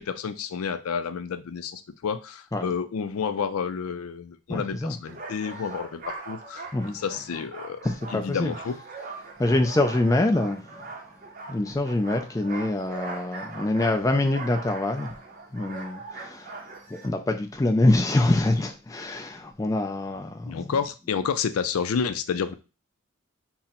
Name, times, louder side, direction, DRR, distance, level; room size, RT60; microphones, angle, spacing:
voice 1, 0.0-7.8 8.1-8.8 20.5-22.5, left 6 dB, 90° left, 0.4 m, -30 dB
voice 2, 4.5-5.0 6.7-7.0 7.8-8.5 9.4-10.8 11.5-15.2 15.5-20.7, left 2 dB, 15° left, 0.3 m, -25 dB
sound 1, 5.1-17.1, right 3 dB, 40° right, 0.6 m, -41 dB
3.8 x 2.0 x 4.2 m
head